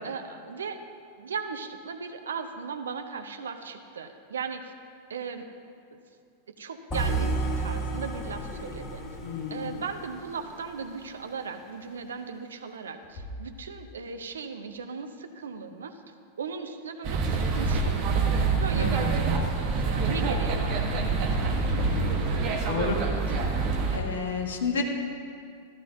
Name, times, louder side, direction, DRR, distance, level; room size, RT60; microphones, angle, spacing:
voice 1, 0.0-0.8 1.2-4.7 5.1-5.5 6.5-9.0 9.5-18.2 18.5-21.0, right 5 dB, 65° right, 7 dB, 0.7 m, -37 dB
sound 1, 6.9-11.0, right 3 dB, 25° left, 1.5 m, -32 dB
voice 2, 9.2-9.7 18.7-18.9 21.8-22.2 22.7-23.0 23.3-23.4 23.9-24.8, left 5 dB, 65° left, 2 dB, 1.3 m, -31 dB
sound 2, 17.0-24.0, right 4 dB, 40° right, 1.3 m, -26 dB
14.0 x 13.0 x 2.7 m, 2.3 s
figure-of-eight pair, 90°, 0 cm